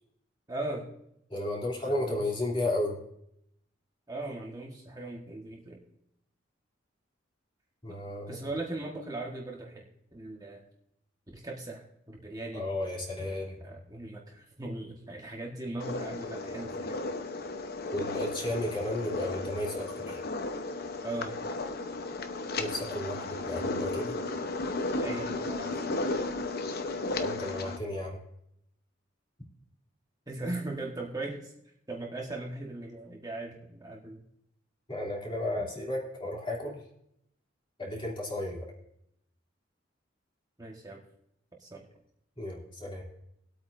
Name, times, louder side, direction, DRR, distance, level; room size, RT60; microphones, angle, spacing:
voice 1, 0.5-0.9 1.8-2.2 4.1-5.8 7.9-8.0 8.3-9.8 10.1-10.6 11.3-12.6 13.2-13.3 13.6-17.1 21.0-21.4 25.0-25.9 30.3-31.5 31.9-34.2 40.6-41.0 41.6-41.8, right 2 dB, 20° right, -1 dB, 1.4 m, -39 dB
voice 2, 1.3-3.0 7.8-8.4 12.5-13.5 17.9-20.2 22.6-24.2 27.2-28.2 34.9-36.8 37.8-38.7 42.4-43.0, left 1 dB, 30° left, -2 dB, 2.9 m, -33 dB
sound 1, 15.8-27.8, left 2 dB, 55° left, 0.9 m, -34 dB
20.5 x 8.5 x 2.6 m, 0.76 s
head